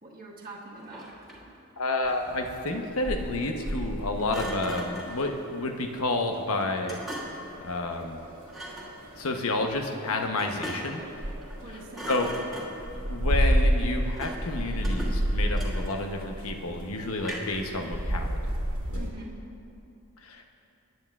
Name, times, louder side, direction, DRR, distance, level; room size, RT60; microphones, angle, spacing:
voice 1, 0.0-1.1 11.6-12.1 17.8-18.0 18.9-19.4, right 2 dB, 40° right, -4 dB, 1.4 m, -44 dB
Thump thud, 0.7-1.6 4.3-5.2 6.9-7.5 8.5-9.0 10.4-11.0 11.4-11.6 11.9-12.9 14.2-14.5 14.8-16.2 17.2-17.7, equal, ahead, 1.7 m, -39 dB
voice 2, 1.8-7.0 7.6-8.2 9.2-11.0 12.1-12.3 13.1-18.4 18.9-19.1 20.2-20.4, left 2 dB, 80° left, 4 dB, 0.9 m, -30 dB
sound 1, 2.0-19.1, equal, 85° right, 2.0 m, -31 dB
18.5 x 9.6 x 2.4 m, 2.8 s
head